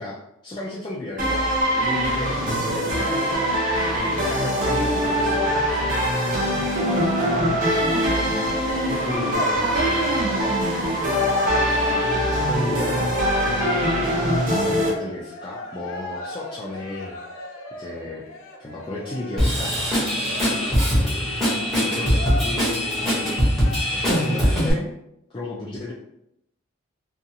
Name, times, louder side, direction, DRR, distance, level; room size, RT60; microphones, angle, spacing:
voice 1, 0.0-3.4 3.8-5.8 8.3-8.4 9.0-10.0 12.3-17.2 17.7-18.2 18.6-20.6 21.0-21.4 21.7-24.9 25.3-25.9, left 2 dB, 20° left, -6 dB, 0.3 m, -34 dB
sound 1, 1.2-14.9, equal, 40° right, 0.7 m, -22 dB
voice 2, 6.8-8.5 9.0-11.0, right 4 dB, 75° right, -1 dB, 0.4 m, -30 dB
Cheering, 14.1-24.2, left 2 dB, 80° left, 0.6 m, -39 dB
Drum kit / Drum, 19.4-24.7, equal, ahead, 0.8 m, -22 dB
2.6 x 2.3 x 2.7 m, 0.79 s
head